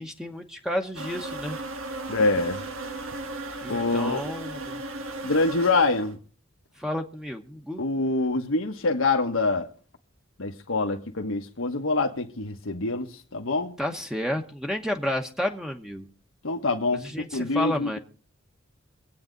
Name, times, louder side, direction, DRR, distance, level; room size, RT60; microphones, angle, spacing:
voice 1, 0.0-1.6 3.6-4.8 6.8-7.8 13.8-16.1 17.0-18.0, left 1 dB, 5° right, 1.1 m, -31 dB
sound 1, 1.0-6.1, right 2 dB, 90° right, 1.7 m, -36 dB
voice 2, 2.1-2.6 3.7-4.2 5.2-6.2 7.8-9.7 10.4-13.8 16.4-18.0, left 3 dB, 75° left, 1.3 m, -25 dB
25.0 x 8.7 x 3.9 m
head